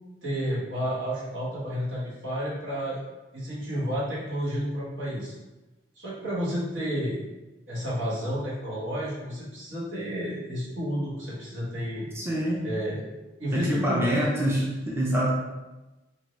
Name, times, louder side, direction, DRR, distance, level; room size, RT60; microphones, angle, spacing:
voice 1, 0.2-3.0 3.3-5.3 6.0-7.2 7.7-12.1 12.6-14.1, equal, 85° right, -7 dB, 1.1 m, -31 dB
voice 2, 12.1-12.7 13.5-15.3, equal, 15° right, -4 dB, 0.4 m, -25 dB
2.6 x 2.6 x 3.0 m, 1.1 s
head